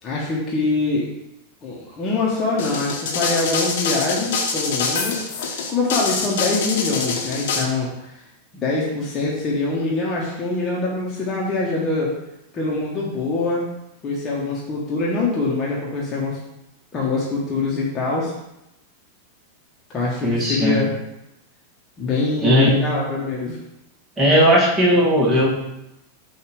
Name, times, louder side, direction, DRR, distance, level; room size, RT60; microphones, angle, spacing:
voice 1, 0.0-1.1 1.6-5.2 5.4-8.2 8.5-12.1 12.5-13.6 14.0-16.4 16.9-18.3 19.9-20.9 22.0-23.6, left 3 dB, 25° left, -4 dB, 1.3 m, -24 dB
sound 1, 2.6-7.6, left 4 dB, 55° left, 1.1 m, -25 dB
voice 2, 20.2-20.8 22.4-22.7 24.2-25.5, equal, 15° right, -3 dB, 1.8 m, -16 dB
7.1 x 2.8 x 5.0 m, 0.88 s
figure-of-eight pair, 90°, 0 cm